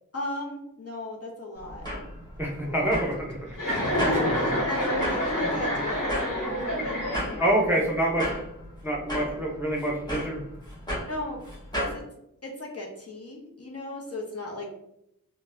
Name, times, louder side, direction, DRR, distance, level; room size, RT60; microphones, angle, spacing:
voice 1, 0.1-1.9 2.6-3.1 4.0-6.5 6.8-7.9 11.1-11.4 11.8-12.0 12.4-14.7, left 2 dB, 45° left, -2 dB, 0.7 m, -36 dB
sound 1, 1.6-12.0, equal, 10° left, 1.4 m, -36 dB
voice 2, 2.4-3.1 7.4-8.3 8.8-10.4, right 1 dB, 5° right, -2 dB, 0.7 m, -26 dB
Chuckle chortle, 3.5-7.6, equal, 65° left, 1.2 m, -27 dB
3.8 x 2.1 x 2.5 m, 0.79 s
wide cardioid pair, 40°, 34 cm